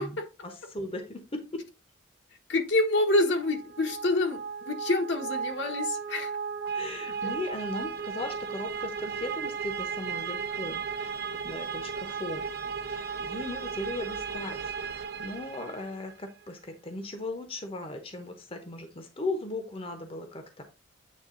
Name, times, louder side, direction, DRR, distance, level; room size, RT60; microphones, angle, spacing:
voice 1, 0.4-1.6 6.7-12.4 12.9-14.6 14.9-20.6, left 2 dB, 30° left, 0.9 m, -37 dB
voice 2, 2.5-4.4 4.7-6.3, left 2 dB, 65° left, 1.2 m, -27 dB
sound 1, 3.3-16.1, right 6 dB, 55° right, 0.6 m, -35 dB
8.5 x 3.5 x 3.8 m
head